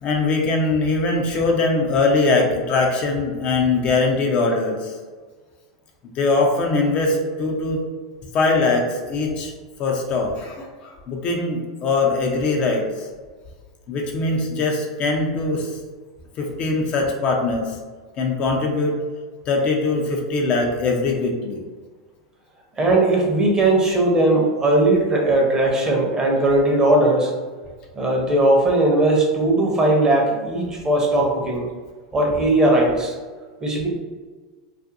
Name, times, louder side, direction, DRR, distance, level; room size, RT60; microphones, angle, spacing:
voice 1, 0.0-5.0 6.0-7.8 8.3-9.5 9.8-13.1 13.9-15.8 16.4-17.8 18.2-19.0 19.5-21.6, left 3 dB, 40° left, 1 dB, 0.5 m, -21 dB
voice 2, 22.8-27.3 28.0-31.7 32.1-33.1 33.6-33.9, right 2 dB, 20° right, -1 dB, 0.7 m, -18 dB
2.5 x 2.4 x 2.5 m, 1.4 s
hypercardioid pair, 95°, 3 cm